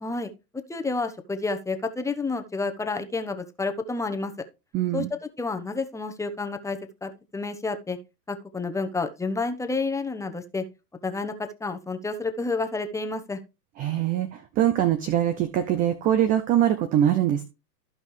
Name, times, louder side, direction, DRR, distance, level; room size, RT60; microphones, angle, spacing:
voice 1, 0.0-4.3 4.9-8.0 8.3-10.6 11.0-13.4, left 3 dB, 5° left, 7 dB, 0.9 m, -30 dB
voice 2, 4.7-5.1 13.8-17.4, right 11 dB, 20° right, 12 dB, 0.4 m, -23 dB
14.5 x 5.3 x 3.2 m, 0.28 s
hypercardioid pair, 120°, 49 cm